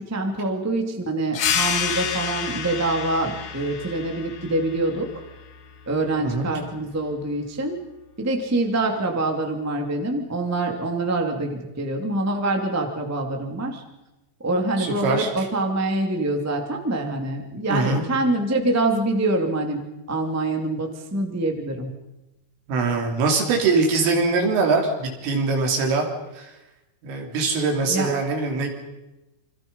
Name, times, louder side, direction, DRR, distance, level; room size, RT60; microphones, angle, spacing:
voice 1, 0.0-5.2 5.8-7.8 8.2-13.8 14.4-19.8 20.1-22.0 27.9-28.1, right 2 dB, 10° right, 3 dB, 1.0 m, -25 dB
sound 1, 1.3-6.5, left 8 dB, 75° left, 1.7 m, -29 dB
voice 2, 6.2-6.5 14.8-15.3 17.7-18.1 22.7-26.1 26.4-26.5 27.0-28.7, right 3 dB, 90° right, 2 dB, 6.1 m, -22 dB
28.0 x 25.5 x 5.5 m, 1.0 s
omnidirectional pair, 5.6 m